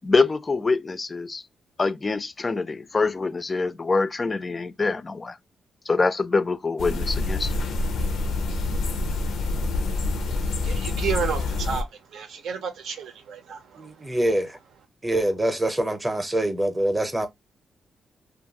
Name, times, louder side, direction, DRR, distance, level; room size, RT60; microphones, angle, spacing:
voice 1, 0.0-1.4 1.8-5.4 5.9-7.5, left 3 dB, 30° left, 0.3 m, -25 dB
sound 1, 6.8-11.8, left 2 dB, 85° left, 0.5 m, -26 dB
voice 2, 10.6-13.9, right 6 dB, 85° right, 0.6 m, -31 dB
voice 3, 13.8-14.6 15.0-17.3, right 1 dB, 15° right, 0.6 m, -25 dB
2.6 x 2.3 x 2.8 m
cardioid pair, 120°, 0 cm